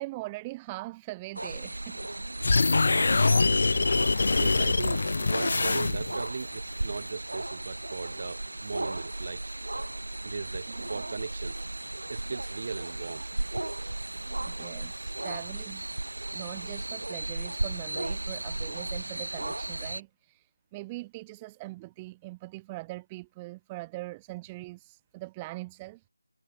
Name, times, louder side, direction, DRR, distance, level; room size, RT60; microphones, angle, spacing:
voice 1, 0.0-2.0 2.5-2.8 14.3-15.9 16.3-26.0, right 21 dB, 5° right, 1.7 m, -42 dB
sound 1, 1.4-20.0, right 2 dB, 80° right, 6.9 m, -35 dB
sound 2, 2.4-6.3, left 3 dB, 30° left, 1.3 m, -24 dB
voice 2, 4.3-9.5 10.2-11.7 12.1-13.3 13.9-14.0, right 4 dB, 25° right, 5.9 m, -38 dB
figure-of-eight pair, 180°, 0 cm